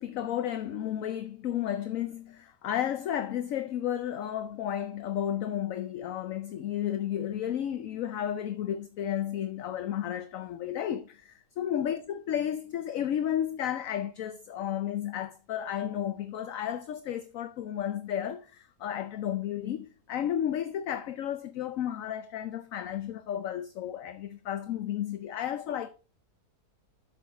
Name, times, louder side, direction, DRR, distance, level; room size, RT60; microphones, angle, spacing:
voice 1, 0.0-25.9, left 10 dB, 65° left, 1.0 m, -33 dB
8.2 x 6.5 x 4.0 m
omnidirectional pair, 1.7 m